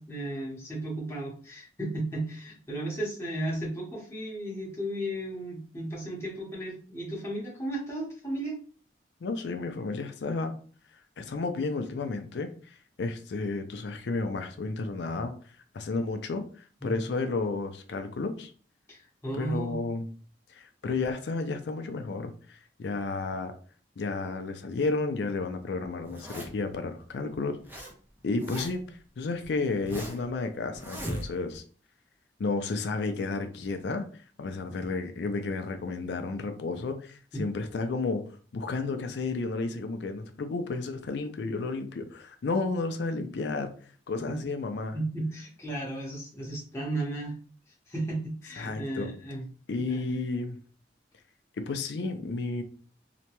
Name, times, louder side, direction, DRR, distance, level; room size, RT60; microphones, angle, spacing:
voice 1, 0.0-8.6 16.8-17.0 18.9-19.8 37.3-37.4 44.3-44.4 44.9-47.3 47.9-49.4 49.9-50.0, right 1 dB, 15° left, -5 dB, 0.9 m, -34 dB
voice 2, 9.2-10.5 11.2-15.3 15.7-18.5 19.3-20.1 20.5-23.5 24.0-27.6 28.2-28.8 29.2-31.6 32.4-34.1 34.4-38.2 38.5-43.7 44.1-45.0 48.6-49.1 49.7-50.6 51.6-52.6, left 3 dB, 75° left, 7 dB, 0.4 m, -32 dB
Zipper (clothing), 26.0-26.7 27.3-27.9 28.2-28.9 29.4-30.3 30.7-31.6, equal, 10° right, 0.5 m, -39 dB
2.8 x 2.2 x 2.9 m, 0.42 s
head